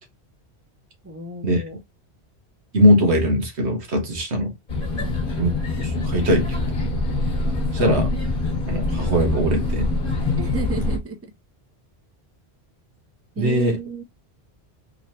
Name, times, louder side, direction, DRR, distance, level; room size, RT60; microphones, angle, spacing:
voice 1, 1.0-1.8 5.0-5.1 10.4-11.2 13.4-14.0, right 3 dB, 15° right, 0.7 m, -32 dB
voice 2, 2.7-4.5 5.4-5.5 5.8-6.4 7.7-8.1 8.7-9.9 13.4-13.8, equal, 90° right, 1.5 m, -20 dB
sound 1, 4.7-11.0, left 2 dB, 55° left, 1.2 m, -24 dB
3.8 x 3.1 x 2.8 m
omnidirectional pair, 1.1 m